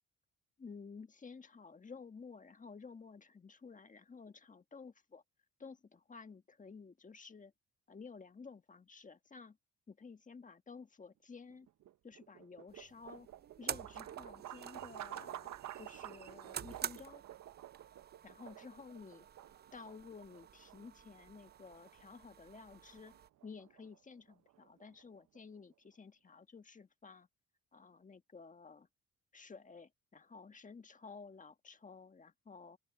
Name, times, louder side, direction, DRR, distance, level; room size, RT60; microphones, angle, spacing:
voice 1, 0.6-5.2 5.6-7.5 7.9-9.6 9.9-11.7 12.0-13.3 13.6-17.2 18.2-19.3 19.7-23.2 23.4-27.3 27.7-28.9 29.3-32.8, left 5 dB, 25° left, 1.4 m, -53 dB
sound 1, 11.5-25.6, right 13 dB, 70° right, 0.9 m, -52 dB
sound 2, 12.7-23.3, right 8 dB, 35° right, 0.5 m, -49 dB
open air
cardioid pair, 90°, 30 cm